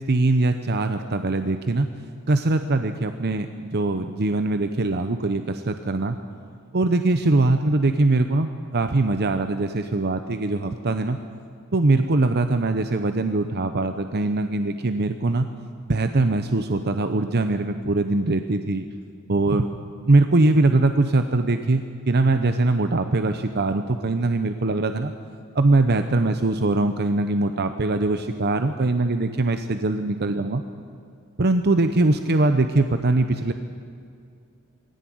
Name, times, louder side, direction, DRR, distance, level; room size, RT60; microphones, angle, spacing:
voice 1, 0.1-1.9 2.3-6.2 6.7-11.2 11.7-15.5 15.9-18.8 19.3-19.7 20.1-25.1 25.5-30.6 31.4-33.5, right 2 dB, 50° right, 8 dB, 0.8 m, -22 dB
22.0 x 17.0 x 9.4 m, 2.4 s
head